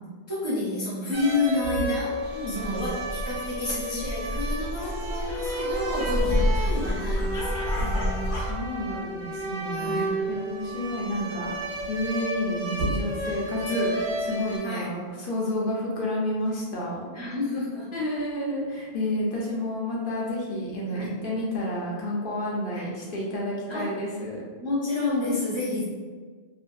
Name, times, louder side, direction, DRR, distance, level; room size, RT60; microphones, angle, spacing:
voice 1, 0.3-2.2 2.5-8.3 9.7-10.2 14.6-14.9 17.1-17.9 20.9-21.1 22.7-22.9 23.7-23.9 24.6-25.8, left 2 dB, 40° right, -8 dB, 0.4 m, -30 dB
sound 1, 1.1-14.6, right 1 dB, 80° right, 0.9 m, -32 dB
sound 2, 2.2-8.5, equal, 85° left, 0.9 m, -29 dB
voice 2, 2.3-2.8 6.1-6.5 7.8-7.9 8.3-11.5 11.9-17.1 17.9-24.4, left 1 dB, 60° left, -4 dB, 0.7 m, -30 dB
2.5 x 2.5 x 2.2 m, 1.5 s
omnidirectional pair, 1.1 m